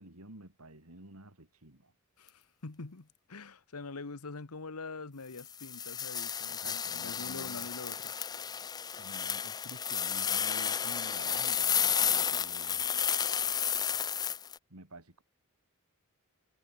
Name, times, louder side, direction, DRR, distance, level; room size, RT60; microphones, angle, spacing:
voice 1, 0.0-1.9 6.5-7.7 9.0-12.9 14.7-15.2, right 2 dB, 80° right, 4.4 m, -50 dB
voice 2, 2.2-8.1, left 3 dB, 85° left, 1.2 m, -44 dB
sound 1, 5.4-14.6, left 8 dB, 15° left, 0.4 m, -32 dB
head